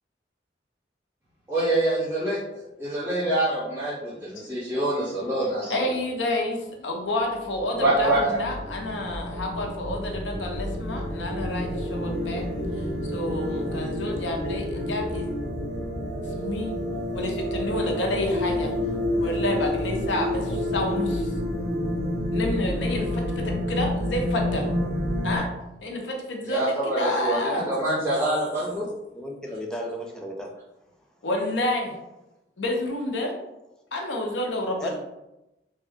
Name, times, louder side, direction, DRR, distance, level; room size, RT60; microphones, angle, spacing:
voice 1, 1.5-5.7 7.8-8.2 26.5-28.9, right 1 dB, 15° right, -12 dB, 0.9 m, -25 dB
voice 2, 5.5-12.4 12.8-12.9 13.1-15.3 16.3-16.7 17.1-18.7 19.2-21.3 22.3-24.7 25.2-25.5 25.8-27.7 31.2-31.9 32.6-33.3 33.9-34.9, left 1 dB, 90° left, 1 dB, 0.7 m, -29 dB
sound 1, 7.3-25.4, left 1 dB, 70° right, 1.4 m, -29 dB
voice 3, 29.1-30.5 34.8-35.0, equal, 5° left, 0 dB, 0.4 m, -34 dB
3.5 x 2.2 x 3.5 m, 0.93 s
head